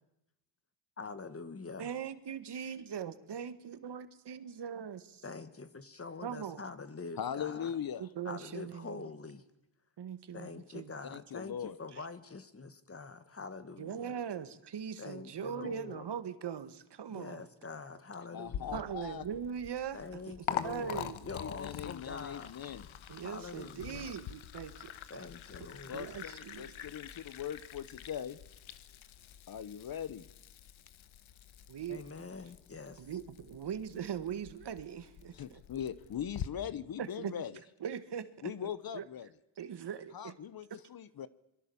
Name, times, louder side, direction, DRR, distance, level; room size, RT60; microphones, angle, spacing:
voice 1, 1.0-1.9 5.2-7.7 8.3-9.4 10.3-14.1 15.0-16.1 17.1-18.9 19.9-22.5 23.2-24.1 25.1-26.0 31.9-33.1, left 4 dB, 30° left, 12 dB, 1.8 m, -45 dB
voice 2, 1.8-5.0 6.2-6.6 8.0-9.1 10.0-10.9 11.9-12.0 13.8-17.4 18.7-20.0 20.3-20.4 20.6-21.2 23.1-24.9 25.6-26.9 31.7-32.0 33.0-35.6 37.0-37.3 37.8-39.0 39.6-40.4, right 8 dB, 60° right, 12 dB, 1.7 m, -41 dB
voice 3, 7.2-8.1 11.1-11.8 18.3-19.2 21.4-22.9 25.9-28.4 29.5-30.3 35.3-37.6 38.4-39.3 40.1-41.3, left 9 dB, 50° left, 17 dB, 0.9 m, -40 dB
Liquid, 18.4-36.5, left 10 dB, 80° left, 1.3 m, -45 dB
26.0 x 22.5 x 7.1 m, 0.85 s
cardioid pair, 105°, 47 cm